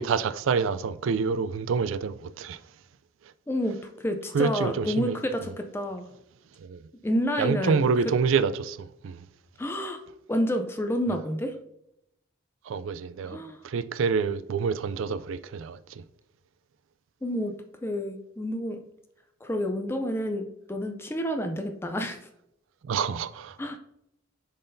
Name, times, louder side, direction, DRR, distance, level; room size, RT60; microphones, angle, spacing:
voice 1, 0.0-2.6 4.3-5.5 6.6-6.9 7.4-9.3 12.6-13.4 13.6-16.0 22.8-23.6, right 5 dB, 75° right, 0.3 m, -27 dB
voice 2, 3.5-6.0 7.0-7.9 9.6-10.0 10.3-11.5 13.2-13.6 17.2-17.5 17.8-18.8 19.4-22.2 23.6-23.8, equal, 10° left, 0.3 m, -29 dB
10.5 x 3.9 x 2.6 m
head